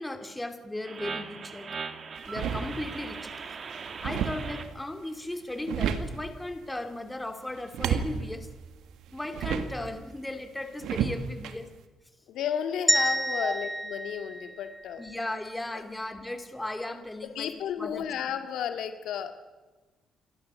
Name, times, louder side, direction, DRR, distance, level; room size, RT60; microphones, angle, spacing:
voice 1, 0.0-1.7 2.3-3.3 4.0-8.5 9.1-11.7 12.9-13.0 13.4-13.6 15.0-17.5 17.8-18.1, left 1 dB, 10° left, 7 dB, 2.6 m, -36 dB
sound 1, 0.8-4.6, right 5 dB, 45° right, 2.0 m, -39 dB
sound 2, 2.2-3.1 3.5-4.8 5.3-6.4 7.5-10.0 10.8-11.6, right 7 dB, 85° right, 1.6 m, -32 dB
voice 2, 12.3-15.0 15.7-15.8 17.4-19.3, left 9 dB, 80° left, 7 dB, 1.9 m, -33 dB
sound 3, 12.9-15.1, right 1 dB, 5° right, 1.1 m, -29 dB
28.5 x 13.0 x 7.6 m, 1.2 s
cardioid pair, 90°, 0 cm